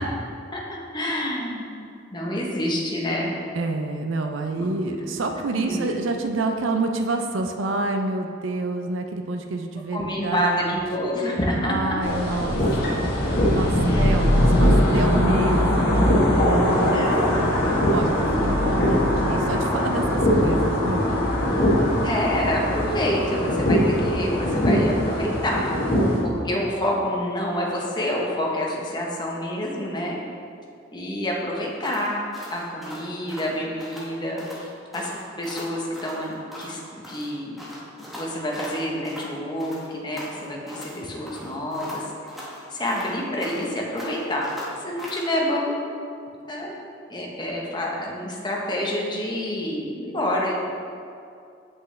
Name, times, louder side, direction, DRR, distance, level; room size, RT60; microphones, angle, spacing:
voice 1, 0.5-1.9 2.1-3.3 4.5-5.0 5.5-5.8 9.9-11.7 13.8-14.1 16.9-17.8 22.0-25.8 26.2-30.2 30.9-35.1 35.4-37.6 38.0-42.0 42.7-44.4 44.8-45.8 46.5-46.7 47.1-50.5, left 1 dB, 25° left, -2 dB, 0.9 m, -28 dB
voice 2, 3.5-10.8 11.6-17.0 17.3-17.5 17.9-21.2, right 2 dB, 80° right, 5 dB, 0.5 m, -28 dB
sound 1, 12.0-26.2, equal, 55° left, 1.4 m, -21 dB
sound 2, 31.8-34.1 34.4-34.7 34.9-36.8 37.0-39.3 39.6-41.0 41.3-43.7 44.0-45.3, left 1 dB, ahead, 1.2 m, -39 dB
7.9 x 5.7 x 3.3 m, 2.5 s
head